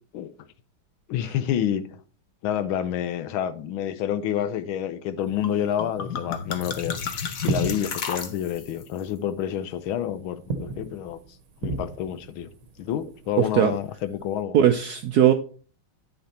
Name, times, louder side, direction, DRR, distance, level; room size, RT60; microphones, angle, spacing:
voice 1, 1.1-1.9 2.4-7.0 7.4-11.2 11.6-12.5 12.8-14.5, left 10 dB, 80° left, 1.5 m, -28 dB
sound 1, 5.2-14.4, right 4 dB, 50° right, 1.3 m, -37 dB
sound 2, 5.4-5.5 5.8-8.8, left 6 dB, 50° left, 1.2 m, -32 dB
voice 2, 13.4-13.7 14.5-15.3, right 10 dB, 75° right, 0.9 m, -19 dB
9.5 x 6.7 x 4.2 m
omnidirectional pair, 2.3 m